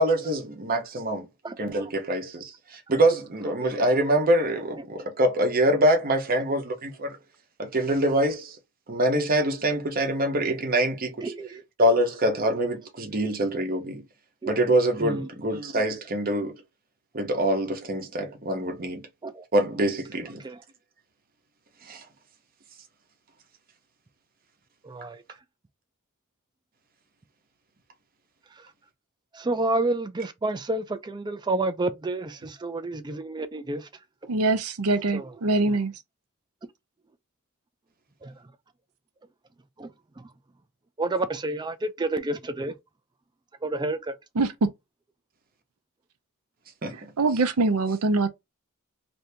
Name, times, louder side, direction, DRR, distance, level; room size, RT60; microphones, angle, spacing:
voice 1, 0.0-1.3 1.6-7.2 7.6-8.6 8.9-11.3 11.8-14.0 14.5-16.6 17.1-19.1 19.5-20.4 21.9-22.0 46.8-47.1, right 1 dB, 40° right, 0.8 m, -25 dB
voice 2, 1.4-1.8 11.2-11.6 14.4-14.5 15.0-15.3 19.2-19.4 20.4-20.6 24.8-25.2 29.3-33.9 35.1-35.3 38.2-38.3 39.8-39.9 41.0-42.7 43.6-44.1, right 2 dB, 20° right, 0.4 m, -29 dB
voice 3, 34.3-35.9 44.4-44.5 47.2-48.3, right 3 dB, 75° right, 0.6 m, -23 dB
2.7 x 2.6 x 3.3 m
head